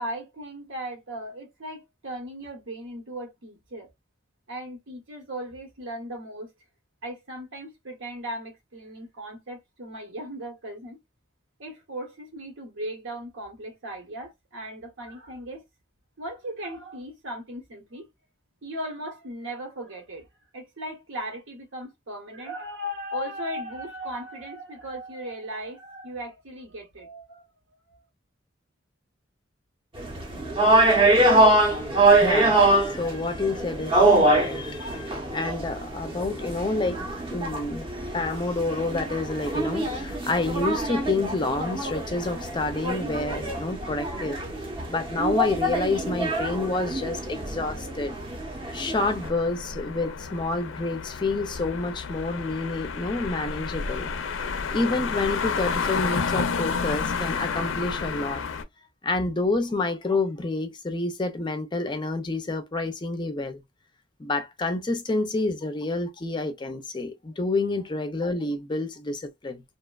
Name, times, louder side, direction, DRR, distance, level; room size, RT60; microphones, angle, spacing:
voice 1, 0.0-3.9 4.5-6.5 7.0-11.0 11.6-15.6 16.2-18.1 18.6-20.3 20.5-27.4 27.9-28.0, equal, 85° right, 0.9 m, -37 dB
sound 1, 30.0-49.3, right 2 dB, 25° right, 0.6 m, -24 dB
voice 2, 32.2-37.9 38.1-44.4 44.9-48.1 48.7-54.1 54.4-58.4 59.0-63.6 64.2-69.6, left 3 dB, 25° left, 0.4 m, -29 dB
sound 2, 49.2-58.6, left 5 dB, 90° left, 0.4 m, -30 dB
2.8 x 2.1 x 2.2 m
head